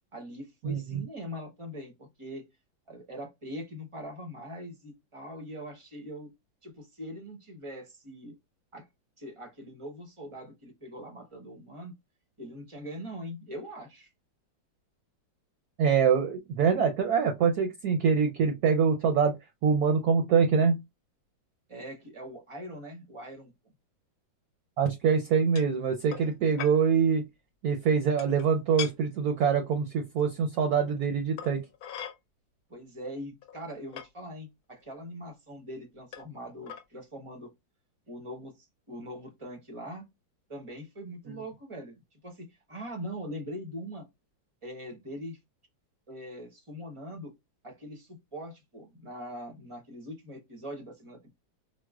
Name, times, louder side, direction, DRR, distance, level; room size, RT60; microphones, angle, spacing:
voice 1, 0.1-2.4 2.9-6.3 6.6-8.4 8.7-8.9 9.2-11.9 12.4-14.1 21.7-23.5 32.7-37.5 38.1-38.5 38.9-40.1 40.5-44.1 44.6-45.4 46.1-47.3 47.6-51.3, equal, 35° right, 0.5 m, -42 dB
voice 2, 0.6-1.0 15.8-19.3 19.6-20.8 24.8-27.2 27.6-31.6, right 6 dB, 70° right, 0.9 m, -24 dB
sound 1, 25.5-25.7 26.1-26.3 26.6-26.8 28.2-28.5 28.8-28.9 30.2-30.3 31.4-32.2 33.0-33.1 33.4-34.1 34.9-35.0 36.1-36.4 36.6-36.8, left 9 dB, 65° left, 1.0 m, -39 dB
4.5 x 2.1 x 2.3 m
omnidirectional pair, 2.0 m